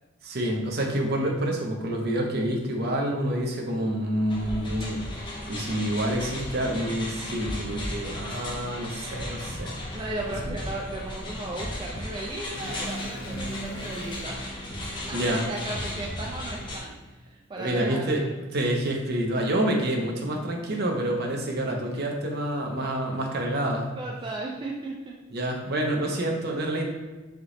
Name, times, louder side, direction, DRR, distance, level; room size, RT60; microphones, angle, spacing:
voice 1, 0.2-5.0 5.5-9.7 10.4-10.5 15.1-15.4 17.6-18.2 18.5-23.9 25.3-26.9, right 1 dB, 55° right, 1 dB, 0.7 m, -27 dB
sound 1, 4.3-16.8, left 1 dB, 25° left, 0.6 m, -35 dB
voice 2, 7.8-8.5 9.9-14.5 15.1-18.3 21.9-22.0 23.1-23.2 24.0-25.2 26.8-26.9, right 2 dB, 25° right, -1 dB, 0.3 m, -36 dB
sound 2, 12.5-16.7, right 1 dB, 80° left, 0.7 m, -40 dB
3.4 x 2.9 x 3.8 m, 1.2 s
head